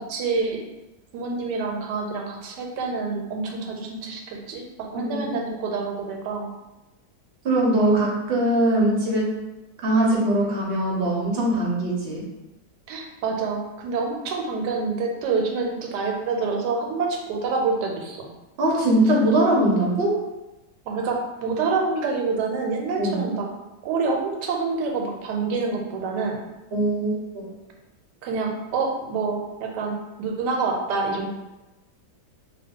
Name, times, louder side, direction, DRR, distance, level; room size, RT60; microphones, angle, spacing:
voice 1, 0.1-0.6 1.1-6.5 12.9-18.3 20.9-23.5 23.8-26.4 28.2-31.3, right 4 dB, 85° right, 1 dB, 1.2 m, -27 dB
voice 2, 5.0-5.5 7.4-9.3 9.8-12.2 18.6-20.2 23.0-23.2 26.7-27.5, right 1 dB, 55° right, -3 dB, 0.7 m, -21 dB
2.8 x 2.3 x 3.6 m, 1.0 s
omnidirectional pair, 1.8 m